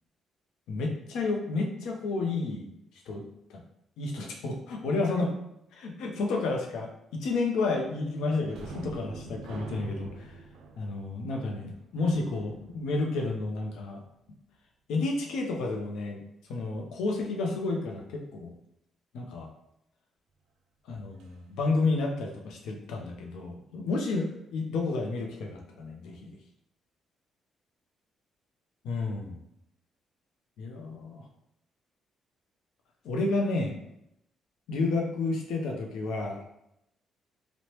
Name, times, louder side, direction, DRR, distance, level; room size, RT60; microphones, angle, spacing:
voice 1, 0.7-2.7 3.1-3.2 3.5-3.6 4.0-5.3 5.7-10.3 10.8-14.0 14.9-16.2 16.5-18.5 19.1-19.5 20.9-26.3 28.8-29.4 30.6-31.2 33.0-33.8 34.7-36.4, left 3 dB, 85° left, 1 dB, 0.5 m, -31 dB
sound 1, 8.5-13.9 21.2-21.3 21.7-21.9, right 3 dB, 85° right, 0.3 m, -46 dB
3.0 x 2.0 x 2.9 m, 0.80 s
cardioid pair, 90°, 0 cm